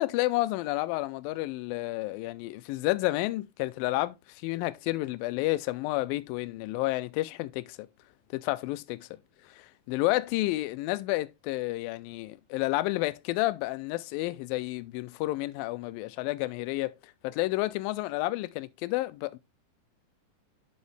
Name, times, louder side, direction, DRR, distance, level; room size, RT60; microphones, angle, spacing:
voice 1, 0.0-4.2 4.4-7.8 8.3-9.0 9.6-17.0 17.2-19.4, left 18 dB, 85° left, 2.3 m, -30 dB
8.1 x 5.5 x 3.2 m
omnidirectional pair, 4.1 m